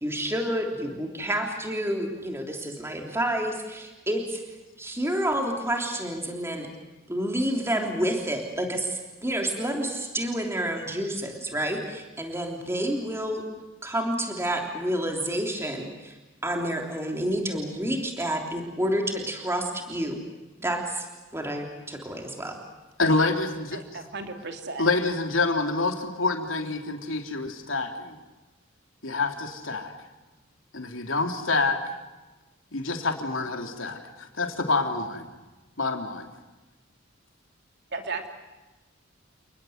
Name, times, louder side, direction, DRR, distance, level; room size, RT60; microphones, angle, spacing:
voice 1, 0.0-4.4 4.8-6.7 7.1-13.4 13.8-16.2 16.4-20.2 20.6-21.1 21.3-22.6, right 1 dB, 15° right, 2 dB, 3.3 m, -29 dB
voice 2, 23.0-23.8 24.8-28.2 29.0-29.9 30.7-31.8 32.7-35.3 35.8-36.3, left 3 dB, 75° left, 4 dB, 3.4 m, -27 dB
voice 3, 23.7-24.9 37.9-38.3, right 3 dB, 60° right, 5 dB, 3.1 m, -35 dB
29.5 x 20.5 x 8.1 m, 1.1 s
head